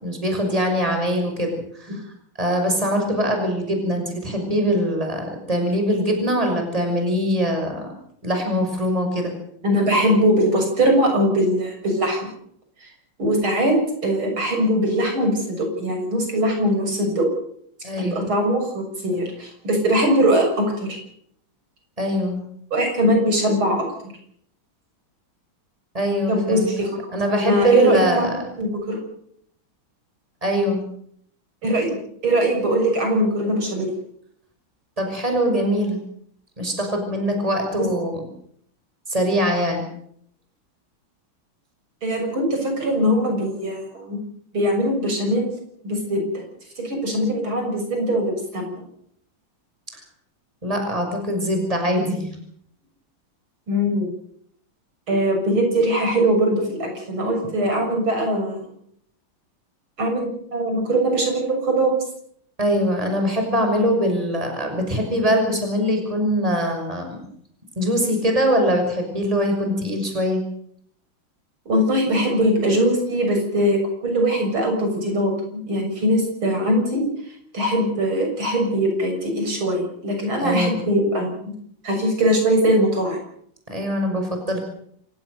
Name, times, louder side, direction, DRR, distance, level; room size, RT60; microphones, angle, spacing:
voice 1, 0.0-2.0 2.4-7.9 8.2-9.3 17.8-18.3 22.0-22.4 25.9-26.7 27.1-28.4 30.4-30.8 35.0-36.0 36.6-38.3 39.1-39.9 50.6-52.3 62.6-67.3 67.8-70.4 80.4-80.8 83.7-84.6, equal, 15° right, 4 dB, 6.1 m, -22 dB
voice 2, 9.6-12.3 13.2-13.8 14.0-17.3 18.0-21.0 22.7-23.9 26.3-26.9 27.4-28.3 28.6-29.0 31.6-31.9 32.2-33.9 37.8-37.9 42.0-44.2 44.5-45.5 45.8-46.4 46.8-48.7 53.7-54.1 55.1-58.6 60.0-62.0 71.7-77.0 77.5-81.4 81.8-83.2, right 1 dB, 80° right, 3 dB, 7.6 m, -21 dB
27.5 x 17.5 x 6.7 m, 0.66 s
omnidirectional pair, 2.2 m